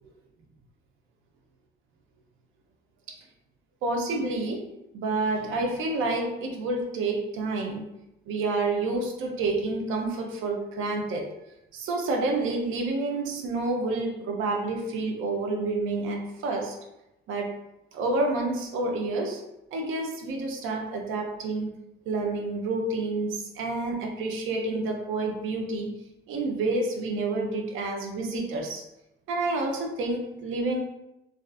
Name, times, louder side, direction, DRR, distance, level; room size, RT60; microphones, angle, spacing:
voice 1, 3.8-7.9 8.3-11.3 11.7-16.8 17.3-17.6 17.9-19.4 19.7-25.9 26.3-28.8 29.3-30.8, right 2 dB, 85° right, 2 dB, 0.5 m, -29 dB
2.4 x 2.3 x 2.3 m, 0.89 s
cardioid pair, 90°, 20 cm